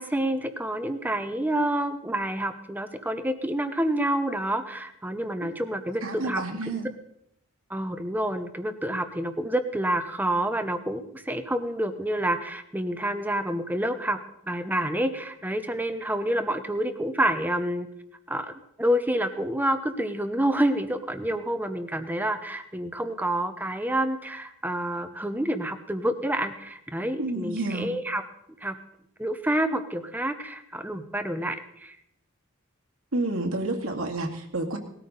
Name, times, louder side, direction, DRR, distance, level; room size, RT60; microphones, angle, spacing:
voice 1, 0.0-6.4 7.7-14.2 14.4-17.9 18.3-18.5 18.8-28.2 28.6-28.8 29.2-32.0, right 1 dB, 10° right, 9 dB, 0.9 m, -28 dB
voice 2, 6.0-6.9 27.2-27.9 33.1-34.8, right 2 dB, 80° right, 3 dB, 2.1 m, -30 dB
19.0 x 13.5 x 4.0 m, 0.75 s
head